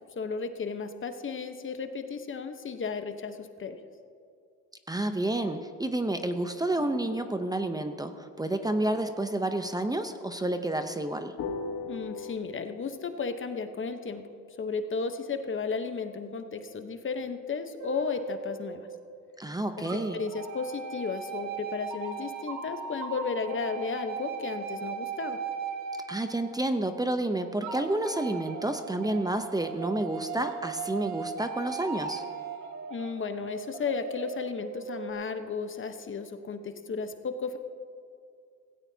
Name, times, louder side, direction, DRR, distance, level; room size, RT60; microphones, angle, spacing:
voice 1, 0.2-3.8 11.9-14.2 14.5-18.9 19.8-25.4 32.9-37.6, left 5 dB, 40° left, 7 dB, 1.1 m, -34 dB
voice 2, 4.9-11.3 19.4-20.2 26.1-32.2, right 1 dB, 10° right, 7 dB, 0.7 m, -30 dB
sound 1, 6.8-9.2 11.4-12.4, left 4 dB, 75° left, 1.4 m, -39 dB
sound 2, 17.8-19.4 19.9-27.0 27.6-35.1, right 6 dB, 70° right, 1.4 m, -38 dB
16.5 x 16.5 x 2.8 m, 2.3 s
cardioid pair, 90°, 30 cm